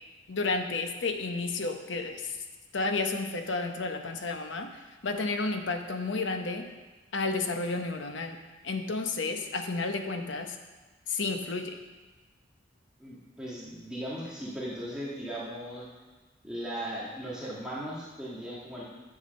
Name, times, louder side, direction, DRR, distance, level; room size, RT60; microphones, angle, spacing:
voice 1, 0.3-2.4 2.7-6.7 7.1-8.4 8.6-10.6 11.1-11.8, left 3 dB, 80° left, 6 dB, 0.9 m, -31 dB
voice 2, 13.0-15.9 16.4-18.8, equal, 5° right, -8 dB, 1.6 m, -37 dB
9.7 x 7.2 x 5.3 m, 1.2 s
head